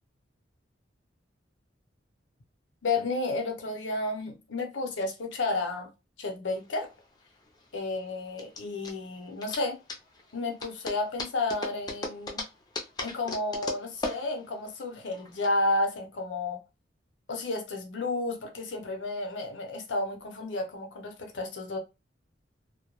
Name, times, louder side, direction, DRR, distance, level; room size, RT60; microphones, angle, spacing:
voice 1, 2.8-5.9 6.2-6.9 7.7-9.8 10.3-12.4 13.0-16.6 17.3-21.8, left 2 dB, 85° left, 0.7 m, -31 dB
sound 1, 6.6-15.5, left 2 dB, 20° left, 0.4 m, -39 dB
2.2 x 2.1 x 2.9 m
head